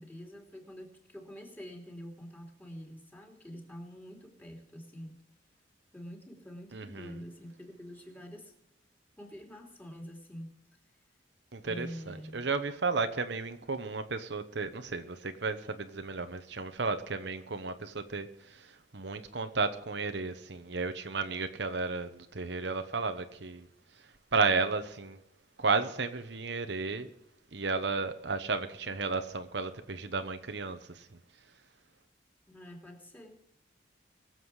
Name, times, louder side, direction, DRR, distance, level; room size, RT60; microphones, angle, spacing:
voice 1, 0.0-5.2 5.9-8.5 9.2-10.6 11.6-12.5 32.5-33.4, equal, 10° left, 3.1 m, -46 dB
voice 2, 6.7-7.1 11.5-18.7 18.9-23.7 24.3-25.2 25.6-27.1 27.5-31.1, right 4 dB, 70° right, 1.0 m, -33 dB
22.5 x 7.8 x 4.9 m
head